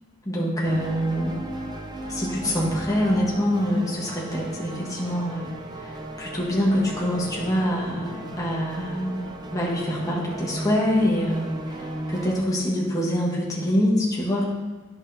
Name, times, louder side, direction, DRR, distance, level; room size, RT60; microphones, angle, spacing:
voice 1, 0.2-1.4 2.1-5.5 5.8-9.3 9.5-14.5, equal, 15° left, -4 dB, 1.3 m, -25 dB
sound 1, 0.6-12.4, right 1 dB, 20° right, 0.6 m, -36 dB
10.0 x 5.8 x 2.8 m, 1.3 s
head